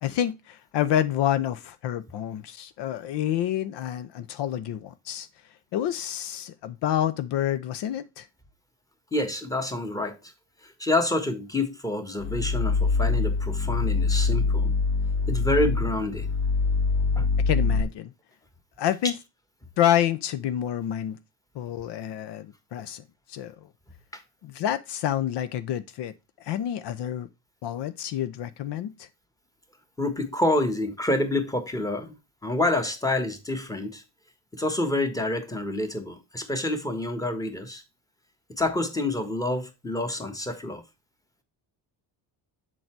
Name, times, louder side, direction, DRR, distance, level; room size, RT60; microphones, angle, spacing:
voice 1, 0.0-5.3 5.7-8.3 17.5-18.1 18.8-19.2 19.8-21.2 21.5-23.7 24.4-27.3 27.6-29.1, left 11 dB, 75° left, 0.7 m, -28 dB
voice 2, 9.1-10.2 10.6-14.7 15.3-16.3 17.1-17.3 24.1-24.2 30.0-32.1 32.4-34.0 34.5-37.8 38.6-40.8, left 1 dB, 10° left, 1.3 m, -27 dB
sound 1, 12.2-17.8, left 4 dB, 30° left, 0.5 m, -24 dB
7.5 x 4.1 x 4.5 m
cardioid pair, 110°, 41 cm